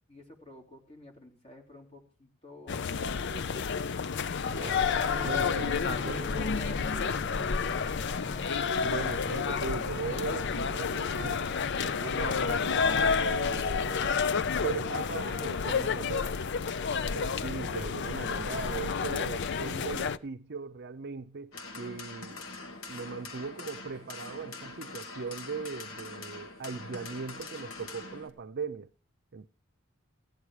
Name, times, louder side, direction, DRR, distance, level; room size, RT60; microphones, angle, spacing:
voice 1, 0.1-4.8 5.6-8.5, left 1 dB, 30° left, 3.4 m, -49 dB
sound 1, 2.7-20.2, left 5 dB, 55° left, 0.5 m, -30 dB
sound 2, 4.5-15.5, right 2 dB, 20° right, 0.8 m, -47 dB
voice 2, 5.2-6.2 8.8-11.5 11.8-14.2 14.6-16.4 16.9-22.3 22.9-28.9 29.3-29.5, right 5 dB, 55° right, 0.6 m, -39 dB
sound 3, 21.5-28.3, left 3 dB, 75° left, 2.2 m, -43 dB
16.5 x 10.5 x 4.8 m
head